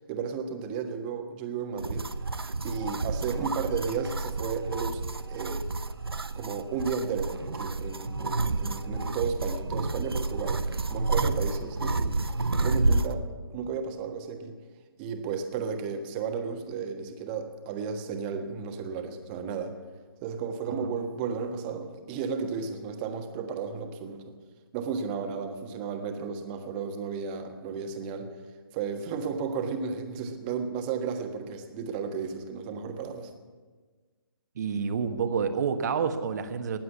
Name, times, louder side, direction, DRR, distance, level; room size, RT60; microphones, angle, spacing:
voice 1, 0.1-2.1 2.6-5.6 6.3-12.3 12.6-13.3 13.5-14.6 15.0-19.8 20.2-24.2 24.7-28.3 28.7-33.3, right 6 dB, 25° right, 5 dB, 1.5 m, -33 dB
sound 1, 1.8-13.1, right 3 dB, 90° right, 0.8 m, -30 dB
voice 2, 34.5-36.8, right 6 dB, 45° right, 8 dB, 1.4 m, -29 dB
19.5 x 7.7 x 8.5 m, 1.4 s
figure-of-eight pair, 145°, 12 cm